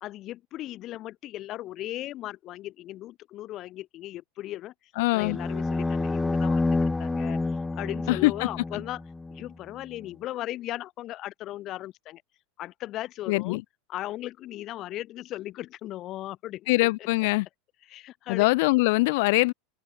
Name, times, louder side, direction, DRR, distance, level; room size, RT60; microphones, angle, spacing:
voice 1, 0.0-4.7 5.1-7.4 7.7-9.0 9.3-12.2 12.6-13.6 13.9-16.7 17.9-18.5, left 14 dB, 45° left, 0.9 m, -37 dB
voice 2, 5.0-5.4 8.1-8.5 8.7-8.8 13.3-13.6 16.7-17.5 18.3-19.5, left 23 dB, 65° left, 0.6 m, -23 dB
sound 1, 5.2-9.5, left 3 dB, 10° left, 0.7 m, -28 dB
open air
hypercardioid pair, 100°, 0 cm